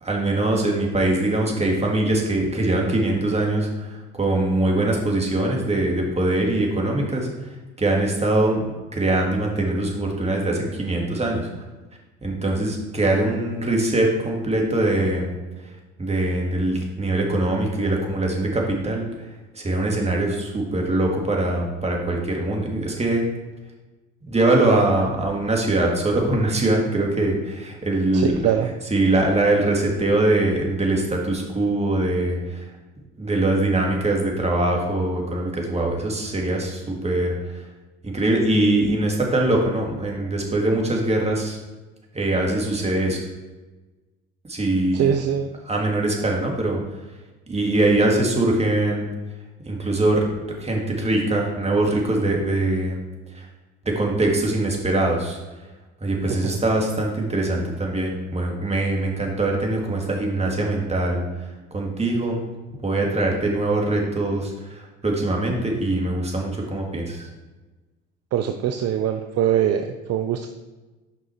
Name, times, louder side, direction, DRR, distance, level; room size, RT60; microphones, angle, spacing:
voice 1, 0.0-7.3 7.8-8.6 8.9-11.5 12.2-15.3 16.0-19.0 19.6-23.2 24.3-28.5 28.9-32.6 33.2-37.3 38.0-41.6 42.1-43.2 44.5-45.1 45.7-46.8 47.5-49.1 49.7-50.2 50.6-53.0 53.4-53.5 53.9-55.4 56.0-61.2 61.7-62.4 62.8-67.3, right 2 dB, 20° right, 0 dB, 1.9 m, -22 dB
voice 2, 28.1-28.7 44.9-45.5 56.3-56.6 68.3-70.5, right 9 dB, 50° right, 6 dB, 0.6 m, -23 dB
5.8 x 5.4 x 4.4 m, 1.2 s
hypercardioid pair, 70°, 32 cm